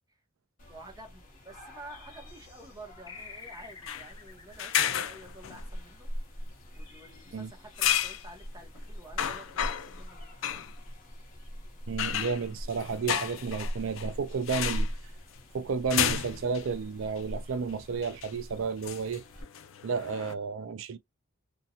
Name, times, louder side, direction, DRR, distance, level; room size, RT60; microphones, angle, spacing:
sound 1, 0.6-19.4, equal, 40° left, 1.0 m, -42 dB
voice 1, 0.7-6.1 6.3-6.4 6.7-10.7, right 1 dB, 20° right, 0.8 m, -50 dB
sound 2, 3.1-6.1, left 5 dB, 20° left, 0.6 m, -49 dB
sound 3, 3.8-4.1 4.6-5.6 7.8-8.3 8.8-8.9 9.2-10.0 10.4-10.7 12.0-14.1 14.5-14.9 15.9-16.7 17.2-17.3 18.0-18.3 18.8-20.3, left 10 dB, 65° left, 0.4 m, -31 dB
voice 2, 11.9-14.9 15.5-19.2 19.8-21.0, right 5 dB, 65° right, 0.4 m, -32 dB
2.6 x 2.2 x 2.8 m
head